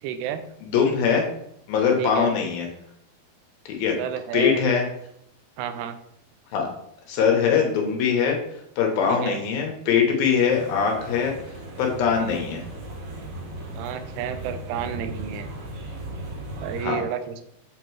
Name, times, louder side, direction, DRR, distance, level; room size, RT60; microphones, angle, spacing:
voice 1, 0.0-0.4 2.0-2.3 4.0-4.6 5.6-6.0 9.1-9.4 13.7-15.5 16.6-17.4, right 9 dB, 90° right, 9 dB, 2.7 m, -31 dB
voice 2, 0.6-1.2 1.7-2.7 3.7-4.0 4.3-4.9 6.5-6.7 7.1-8.4 8.8-11.3 11.8-12.6 16.8-17.0, left 6 dB, 75° left, 2 dB, 2.6 m, -22 dB
sound 1, 10.5-16.8, right 1 dB, 70° right, 4.0 m, -37 dB
7.6 x 3.0 x 4.5 m, 0.75 s
omnidirectional pair, 4.6 m